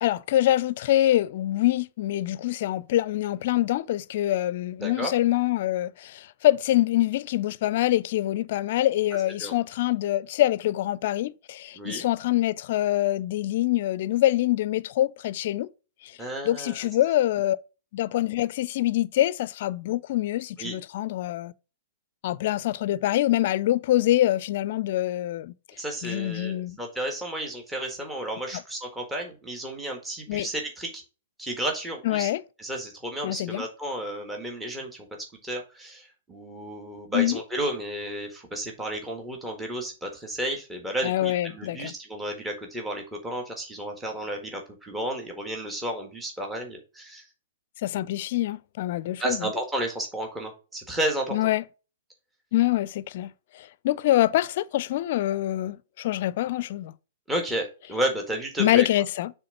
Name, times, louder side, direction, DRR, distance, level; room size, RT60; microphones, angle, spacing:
voice 1, 0.0-15.7 16.4-17.6 17.9-21.5 22.2-25.5 26.0-26.8 30.3-30.5 32.0-32.4 33.2-33.6 37.1-37.4 41.0-41.9 47.8-49.5 51.3-51.6 52.5-56.9 58.6-59.3, left 14 dB, 55° left, 0.4 m, -25 dB
voice 2, 4.8-5.1 9.4-9.5 11.8-12.1 16.2-16.9 20.6-20.7 25.8-31.0 31.4-32.3 32.6-35.1 35.4-47.3 49.2-51.5 57.3-58.9, right 1 dB, 10° right, 1.6 m, -32 dB
6.9 x 3.6 x 5.3 m
hypercardioid pair, 125°, 0 cm